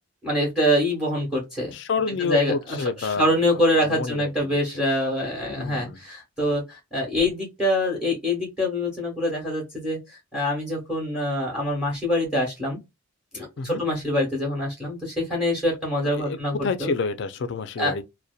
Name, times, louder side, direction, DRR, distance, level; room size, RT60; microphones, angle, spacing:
voice 1, 0.2-1.7 2.2-12.8 13.3-16.9 17.8-17.9, left 1 dB, ahead, 1.0 m, -25 dB
voice 2, 1.7-3.3 3.8-4.6 5.6-6.0 13.6-13.8 16.0-18.0, left 4 dB, 55° left, 0.3 m, -28 dB
2.6 x 2.1 x 2.3 m
head